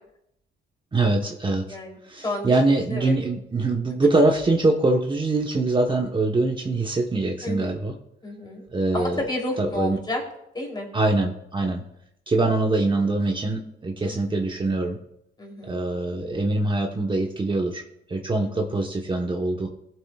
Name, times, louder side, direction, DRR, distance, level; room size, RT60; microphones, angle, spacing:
voice 1, 0.9-1.6 2.0-7.9 8.7-9.2 9.6-10.0 10.9-11.8 12.3-15.0 15.6-17.8 18.1-19.7, right 2 dB, 25° right, 1 dB, 1.1 m, -23 dB
voice 2, 7.4-7.8 8.2-8.6 8.9-10.2 10.5-10.9 14.0-14.3 15.4-15.7, left 1 dB, 20° left, 0 dB, 3.3 m, -31 dB
18.5 x 7.5 x 2.4 m, 0.78 s
cardioid pair, 90°, 20 cm